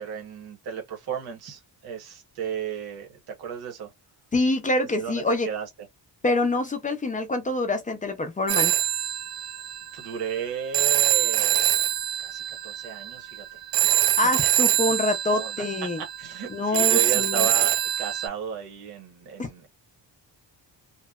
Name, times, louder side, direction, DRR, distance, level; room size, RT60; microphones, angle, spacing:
voice 1, 0.0-3.9 4.9-5.7 9.9-11.7 12.2-14.5 14.9-15.0 15.3-15.6 16.2-19.7, right 7 dB, 60° right, 1.0 m, -34 dB
voice 2, 4.3-5.5 6.2-8.7 14.2-16.0 16.5-17.5 19.4-19.5, left 2 dB, 20° left, 0.3 m, -25 dB
Telephone, 8.5-18.3, right 13 dB, 85° right, 0.5 m, -24 dB
2.8 x 2.1 x 2.2 m
wide cardioid pair, 165°, 43 cm